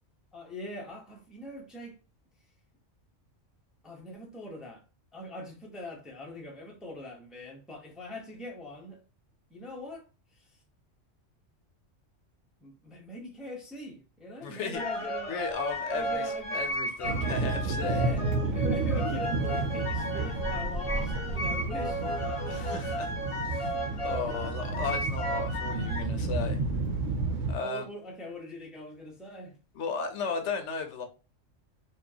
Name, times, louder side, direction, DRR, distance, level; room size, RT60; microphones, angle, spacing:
voice 1, 0.3-2.0 3.8-4.8 5.1-9.0 9.5-10.4 12.6-15.4 15.9-16.7 17.8-22.3 24.3-24.5 27.6-29.6, left 1 dB, ahead, 0.7 m, -42 dB
voice 2, 14.4-14.8 15.3-18.1 22.5-23.1 23.5-23.7 24.0-26.6 27.5-27.8 29.7-31.0, left 5 dB, 70° left, 1.0 m, -35 dB
sound 1, 14.7-26.0, equal, 30° left, 0.8 m, -34 dB
sound 2, 17.0-27.5, right 3 dB, 80° right, 1.1 m, -31 dB
4.6 x 2.5 x 2.7 m
omnidirectional pair, 1.3 m